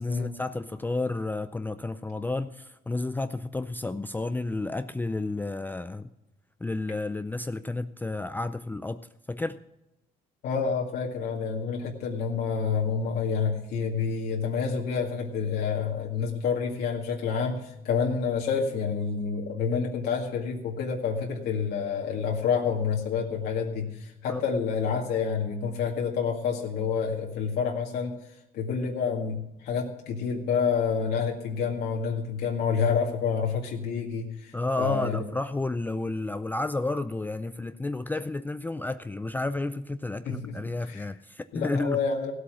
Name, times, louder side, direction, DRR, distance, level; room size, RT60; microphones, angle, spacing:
voice 1, 0.0-6.1 6.6-9.6 24.3-24.4 34.5-42.0, left 2 dB, 10° left, 0.4 m, -31 dB
voice 2, 10.4-28.2 28.5-35.2 40.2-41.0 41.5-42.3, left 6 dB, 75° left, 2.0 m, -28 dB
16.0 x 8.5 x 6.1 m
cardioid pair, 110°, 17 cm